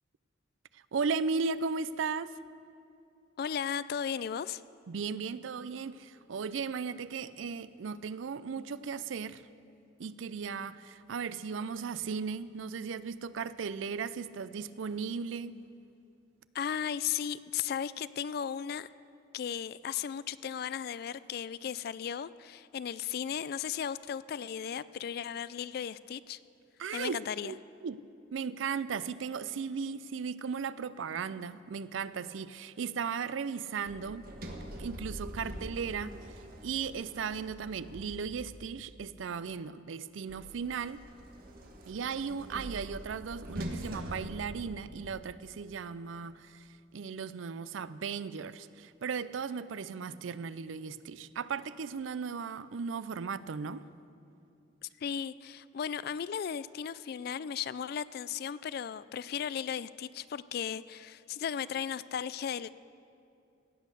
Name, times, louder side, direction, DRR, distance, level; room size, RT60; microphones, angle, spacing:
voice 1, 0.7-2.3 4.9-9.4 10.0-15.6 26.8-27.6 27.8-28.0 28.3-34.3 34.8-36.1 36.6-41.0 41.9-53.8, right 5 dB, 80° right, 16 dB, 0.4 m, -36 dB
voice 2, 3.4-4.6 16.5-18.9 19.3-26.4 26.9-27.5 54.8-62.7, left 8 dB, 55° left, 17 dB, 0.3 m, -36 dB
Sliding door, 33.8-38.7 40.3-45.2, equal, 50° right, 1.4 m, -44 dB
17.0 x 8.3 x 6.7 m, 2.6 s
head